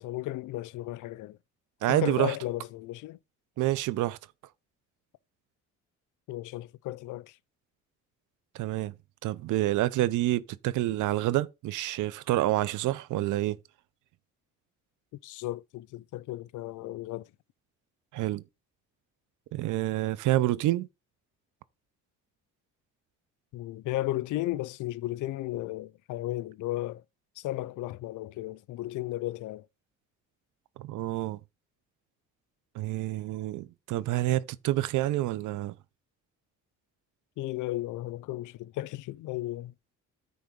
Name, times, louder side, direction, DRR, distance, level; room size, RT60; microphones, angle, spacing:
voice 1, 0.0-1.4 1.9-3.2 6.3-7.3 15.2-17.2 23.5-27.0 27.4-29.6 37.4-39.7, left 16 dB, 80° left, 0.5 m, -34 dB
voice 2, 1.8-2.4 3.6-4.2 8.5-8.9 9.2-13.6 18.1-18.4 19.5-20.9 30.8-31.4 32.8-35.7, right 15 dB, 85° right, 0.6 m, -28 dB
9.5 x 3.5 x 5.1 m
cardioid pair, 90°, 30 cm